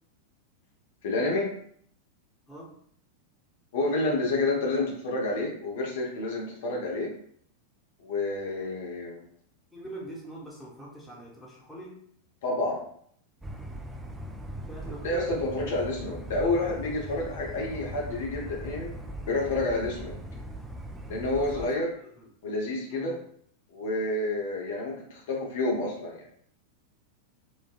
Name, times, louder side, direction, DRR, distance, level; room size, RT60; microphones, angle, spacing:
voice 1, 1.0-1.5 3.7-7.1 8.0-9.2 12.4-12.8 15.0-18.9 19.2-20.1 21.1-21.9 22.4-23.1 23.7-26.3, left 2 dB, 55° left, -2 dB, 0.7 m, -29 dB
voice 2, 9.7-12.0 14.7-15.3 21.3-21.8 22.2-22.3 22.9-23.2, right 1 dB, 5° left, -4 dB, 0.9 m, -43 dB
sound 1, 13.4-21.7, right 1 dB, 10° right, 0.3 m, -40 dB
3.2 x 2.2 x 2.3 m, 0.62 s
figure-of-eight pair, 90°, 0 cm